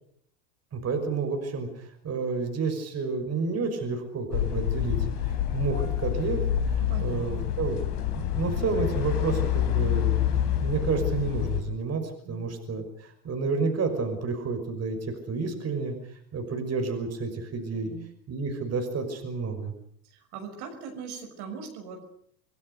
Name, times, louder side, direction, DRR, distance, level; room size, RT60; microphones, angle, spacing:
voice 1, 0.7-5.0 5.2-6.7 7.0-7.8 8.1-17.9 18.3-19.7, right 4 dB, 30° right, 6 dB, 5.9 m, -30 dB
sound 1, 4.3-11.6, left 10 dB, 65° left, 4.7 m, -27 dB
voice 2, 6.7-7.5 12.2-12.5 17.7-18.0 20.0-22.1, right 5 dB, 50° right, 4 dB, 6.2 m, -40 dB
28.0 x 20.5 x 6.7 m, 0.65 s
figure-of-eight pair, 75°, 48 cm